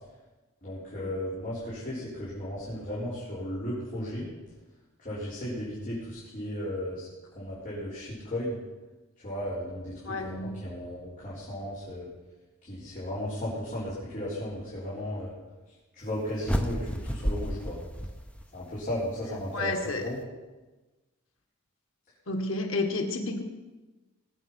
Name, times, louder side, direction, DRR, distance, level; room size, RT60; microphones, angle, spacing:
voice 1, 0.6-4.3 5.0-7.1 7.3-8.6 9.2-9.9 10.2-12.1 12.6-15.3 15.9-17.8 18.5-20.2, left 1 dB, 40° left, -9 dB, 4.5 m, -35 dB
voice 2, 10.1-10.6 19.5-20.1 22.3-23.4, left 2 dB, 90° left, 4 dB, 1.8 m, -31 dB
sound 1, 16.4-18.8, equal, 5° left, 1.0 m, -31 dB
20.0 x 9.1 x 5.8 m, 1.2 s
head